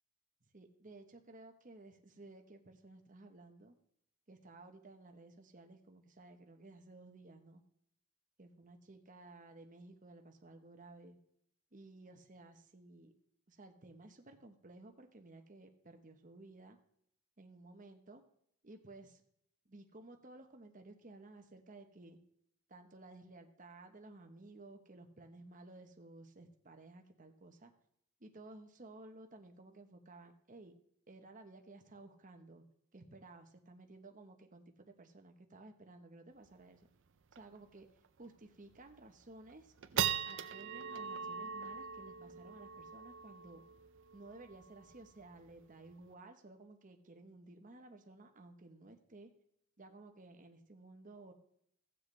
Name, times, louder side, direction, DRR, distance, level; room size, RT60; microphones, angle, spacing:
voice 1, 0.5-3.8 4.3-7.6 8.4-11.2 11.7-13.1 13.5-16.8 17.4-18.2 18.6-19.2 19.6-22.2 22.7-27.7 28.2-30.7 31.1-32.6 32.9-36.9 37.3-37.9 38.2-43.6 44.1-49.3 49.8-51.3, right 2 dB, 35° right, 5 dB, 1.0 m, -55 dB
sound 1, 36.5-36.6 36.8-36.9 37.3-37.6 38.0-38.1 38.7-39.1 39.5-46.1, right 8 dB, 60° right, 0.5 m, -41 dB
16.5 x 7.4 x 3.3 m, 0.70 s
head